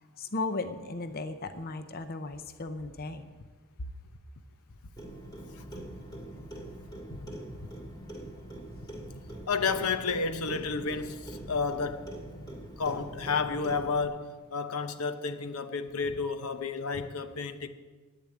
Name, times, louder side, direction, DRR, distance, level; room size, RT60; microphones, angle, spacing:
voice 1, 0.2-3.3, left 3 dB, 45° left, 0.7 m, -36 dB
Clock, 5.0-14.1, right 1 dB, 20° left, 2.3 m, -43 dB
voice 2, 9.5-12.1 12.8-17.7, left 4 dB, 80° left, 0.8 m, -31 dB
10.5 x 9.1 x 8.9 m
head